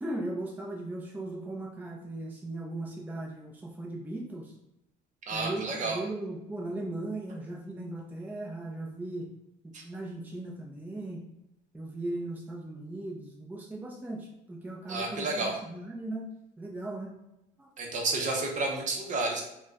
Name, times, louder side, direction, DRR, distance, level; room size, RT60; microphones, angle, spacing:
voice 1, 0.0-4.5 5.3-9.3 9.6-11.2 11.7-16.3 16.6-17.1 17.6-17.7, right 2 dB, 10° right, -2 dB, 0.5 m, -38 dB
voice 2, 5.3-6.0 9.7-9.8 14.9-15.5 17.8-19.4, right 3 dB, 45° right, 1 dB, 0.8 m, -31 dB
4.2 x 2.2 x 2.4 m, 0.89 s
cardioid pair, 110°, 17 cm